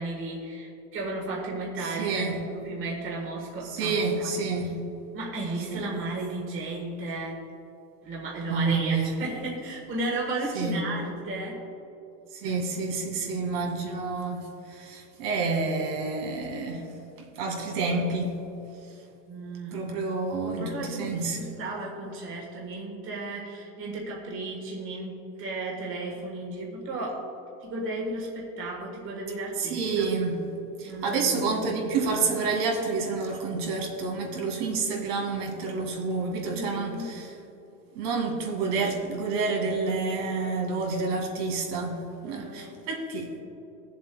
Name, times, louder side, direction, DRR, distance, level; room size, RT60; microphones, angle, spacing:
voice 1, 0.0-4.3 5.1-7.4 8.0-11.6 12.4-12.7 13.1-13.5 19.3-19.9 20.4-27.3 27.6-30.1 30.8-31.6 36.5-37.1 42.2-42.8, right 2 dB, 25° right, -2 dB, 1.4 m, -34 dB
voice 2, 1.8-2.4 3.6-4.8 5.7-5.8 8.5-9.1 10.6-10.9 12.3-16.9 17.2-18.4 19.7-21.4 29.6-30.4 30.8-37.3 37.9-43.3, right 4 dB, 75° right, 0 dB, 2.1 m, -29 dB
22.0 x 7.3 x 2.3 m, 2.8 s
supercardioid pair, 155°, 47 cm